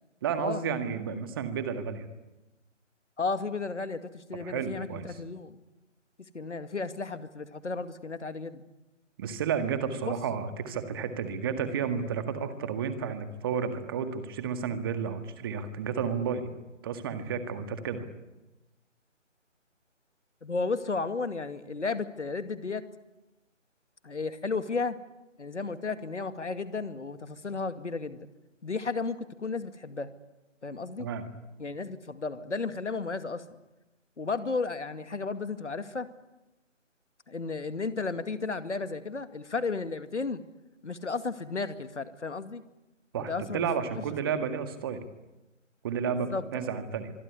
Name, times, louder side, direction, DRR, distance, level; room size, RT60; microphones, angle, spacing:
voice 1, 0.2-2.1 4.4-5.1 9.2-16.5 16.8-18.1 31.0-31.3 43.1-45.0 45.8-47.1, right 6 dB, 20° right, 9 dB, 1.8 m, -32 dB
voice 2, 3.2-5.6 6.3-8.6 10.0-10.1 20.4-22.9 24.0-25.0 25.4-28.3 28.6-30.1 30.6-31.1 31.6-33.4 34.2-36.1 37.3-40.4 40.8-42.6 43.2-43.9 46.3-46.5, left 4 dB, 65° left, 10 dB, 2.3 m, -33 dB
25.5 x 23.5 x 9.8 m, 1.0 s
figure-of-eight pair, 155°, 38 cm